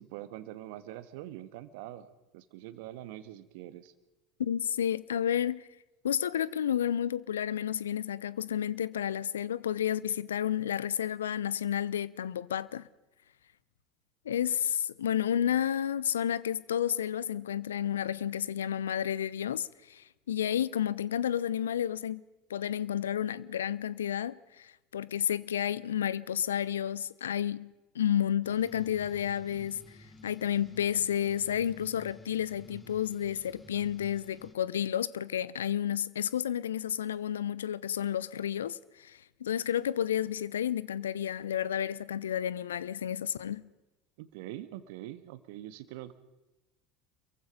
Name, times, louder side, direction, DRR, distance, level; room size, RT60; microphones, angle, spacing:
voice 1, 0.0-3.9 44.2-46.1, right 14 dB, 60° right, 1.6 m, -44 dB
voice 2, 4.4-5.7 6.0-12.9 14.2-22.2 22.5-29.8 30.2-43.7, left 10 dB, 75° left, 0.7 m, -31 dB
sound 1, 28.4-34.5, left 1 dB, 15° left, 2.2 m, -53 dB
28.0 x 23.0 x 5.3 m
figure-of-eight pair, 70°, 0 cm